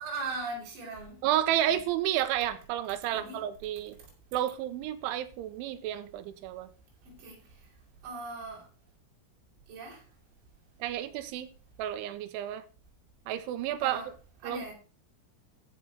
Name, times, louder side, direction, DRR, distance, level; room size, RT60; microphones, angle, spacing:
voice 1, 0.0-1.2 1.7-1.8 3.1-3.4 4.0-4.1 7.0-7.7 8.0-8.7 9.7-10.0 13.8-14.1 14.4-14.7, right 3 dB, 65° right, 6.3 m, -39 dB
voice 2, 1.2-4.0 4.3-6.7 10.8-11.5 11.8-12.6 13.3-14.0 14.4-14.7, right 12 dB, 85° right, 3.3 m, -31 dB
14.0 x 5.2 x 5.6 m
omnidirectional pair, 5.4 m